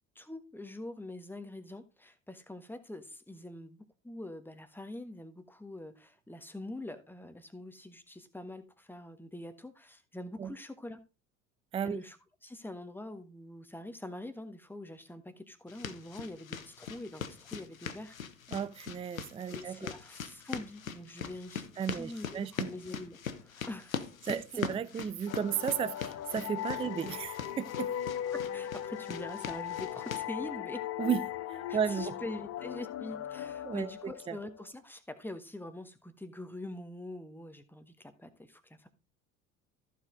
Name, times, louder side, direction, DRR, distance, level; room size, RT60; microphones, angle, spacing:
voice 1, 0.1-3.8 4.0-11.0 11.8-12.2 12.4-18.2 19.5-21.6 21.9-24.1 28.3-30.8 31.7-38.9, left 1 dB, 5° left, 1.4 m, -44 dB
sound 1, 15.7-30.3, left 7 dB, 85° left, 0.9 m, -42 dB
voice 2, 18.5-19.9 21.8-22.7 24.3-27.9 31.0-31.2 31.5-32.1 33.6-33.9 34.3-34.4, right 8 dB, 15° right, 0.5 m, -34 dB
sound 2, 25.3-34.7, left 11 dB, 35° left, 0.8 m, -38 dB
14.0 x 5.0 x 3.8 m
figure-of-eight pair, 65°, 40 cm